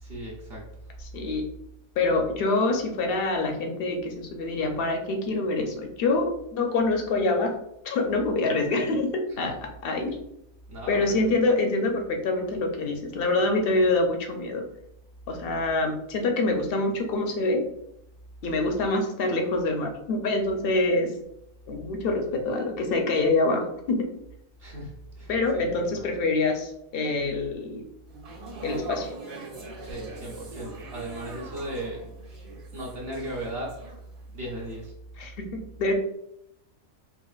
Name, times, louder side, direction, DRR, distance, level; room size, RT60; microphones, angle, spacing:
voice 1, 0.0-0.6 9.3-9.5 10.7-11.3 24.6-26.1 29.8-32.0 32.7-33.8 34.3-34.9, right 1 dB, 50° right, -3 dB, 0.9 m, -36 dB
voice 2, 1.1-1.4 2.0-7.6 7.8-9.1 9.4-10.2 10.9-14.6 15.3-17.7 18.4-21.1 21.7-24.1 25.3-27.8 28.6-29.1 35.2-35.9, left 2 dB, 55° left, 3 dB, 0.7 m, -26 dB
sound 1, 28.1-34.3 34.6-34.9, right 2 dB, 70° right, 1.9 m, -42 dB
5.6 x 2.4 x 2.4 m, 0.80 s
omnidirectional pair, 1.5 m